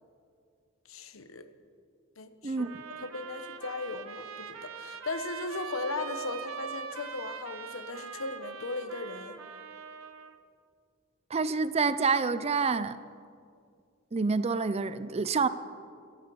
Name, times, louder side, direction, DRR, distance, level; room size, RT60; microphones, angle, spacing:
voice 1, 0.9-1.4 2.2-2.6 3.0-9.4, left 3 dB, 70° left, 10 dB, 1.0 m, -37 dB
voice 2, 2.4-2.8 11.3-13.0 14.1-15.5, right 4 dB, 30° right, 14 dB, 0.5 m, -27 dB
sound 1, 2.6-10.3, right 6 dB, 70° right, 0.9 m, -42 dB
14.0 x 13.0 x 7.0 m, 2.2 s
head